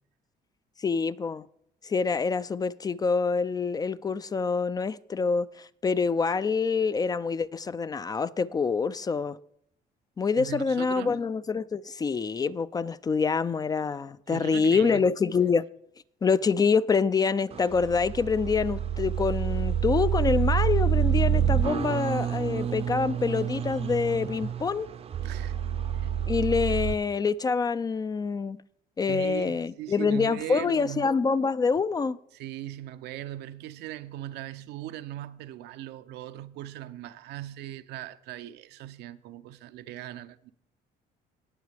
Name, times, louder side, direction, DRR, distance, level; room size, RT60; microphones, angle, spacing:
voice 1, 0.8-1.4 1.8-9.4 10.2-15.6 16.2-24.9 26.3-28.6 29.0-32.2, left 5 dB, 25° left, 0.3 m, -26 dB
voice 2, 10.4-11.2 14.3-15.1 25.2-25.6 25.9-26.2 29.1-31.1 32.3-40.5, right 13 dB, 80° right, 0.6 m, -39 dB
sound 1, 17.5-26.9, right 9 dB, 35° right, 0.6 m, -28 dB
18.5 x 7.3 x 3.4 m
cardioid pair, 110°, 17 cm